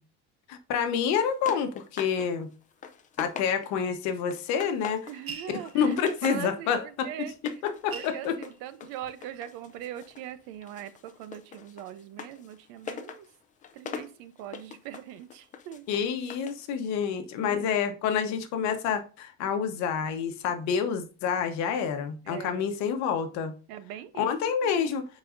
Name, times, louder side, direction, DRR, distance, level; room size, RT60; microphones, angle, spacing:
voice 1, 0.5-2.5 3.2-5.1 5.5-8.4 15.9-23.5 24.2-25.1, left 7 dB, 60° left, 1.1 m, -28 dB
sound 1, 1.1-2.3 2.6-3.9 4.3-5.2 5.6-6.5 7.3-10.3 10.6-16.6, left 7 dB, 25° left, 0.5 m, -43 dB
voice 2, 5.1-7.3 7.9-13.2 13.7-15.8 17.1-17.7 22.2-22.6 23.7-24.3 24.6-24.8, right 11 dB, 85° right, 0.8 m, -41 dB
sound 2, 5.3-6.2 7.3-7.4 7.7-9.3 9.8-10.4, right 5 dB, 45° right, 1.3 m, -43 dB
9.7 x 4.2 x 2.6 m
cardioid pair, 155°, 31 cm